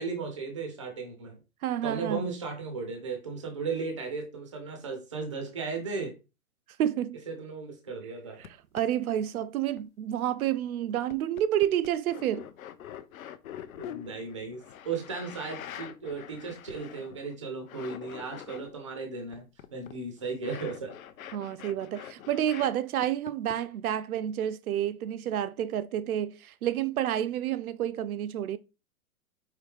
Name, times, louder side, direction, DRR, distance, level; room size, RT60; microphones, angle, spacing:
voice 1, 0.0-1.4 1.8-6.1 7.3-8.4 13.7-20.9 22.0-22.1, right 4 dB, 20° right, 0.4 m, -36 dB
voice 2, 1.6-2.2 6.8-7.2 8.4-8.5 8.7-12.5 21.3-28.6, right 11 dB, 75° right, 0.5 m, -29 dB
sound 1, 8.4-8.5 8.7-8.8 9.4-9.8 10.4-10.5 11.1-17.3 17.6-18.7 19.3-22.7 23.0-23.6, left 10 dB, 70° left, 0.6 m, -44 dB
4.8 x 3.1 x 3.3 m
hypercardioid pair, 170°, 44 cm